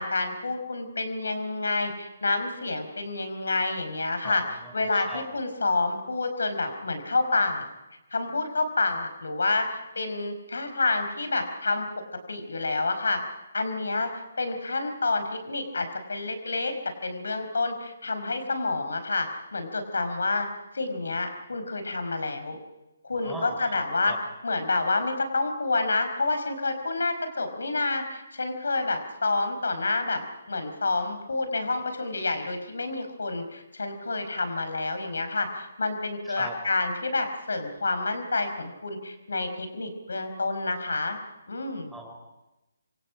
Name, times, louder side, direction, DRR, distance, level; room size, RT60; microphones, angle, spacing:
voice 1, 0.0-7.6 8.1-11.9 12.3-13.2 13.5-16.7 17.0-20.5 20.7-22.6 23.0-24.1 24.4-41.2 41.5-41.9, left 3 dB, 65° left, 8 dB, 5.1 m, -28 dB
voice 2, 4.2-5.2 23.2-24.2 36.2-36.5 41.9-42.1, right 1 dB, ahead, 0 dB, 4.7 m, -41 dB
27.5 x 25.0 x 5.1 m, 0.97 s
figure-of-eight pair, 140°, 0 cm